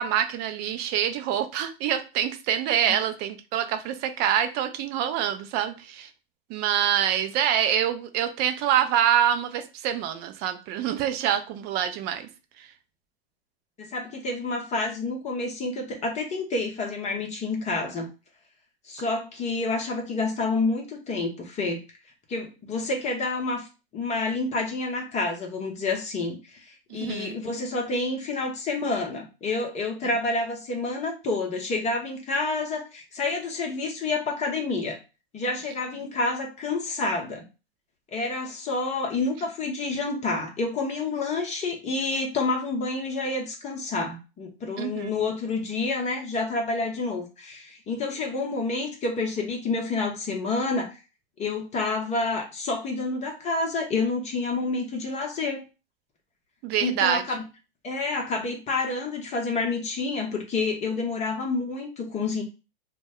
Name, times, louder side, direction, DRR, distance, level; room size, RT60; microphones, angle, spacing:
voice 1, 0.0-6.1 6.5-12.3 12.6-12.7 26.9-27.4 44.8-45.1 56.6-57.2, right 10 dB, 35° right, 9 dB, 0.5 m, -26 dB
voice 2, 13.8-18.1 18.9-21.8 22.3-23.7 23.9-35.0 35.3-37.4 38.1-51.0 51.4-55.6 56.8-57.4 57.8-62.4, left 3 dB, 25° left, 2 dB, 0.7 m, -28 dB
2.2 x 2.0 x 3.4 m, 0.29 s
hypercardioid pair, 105°, 30 cm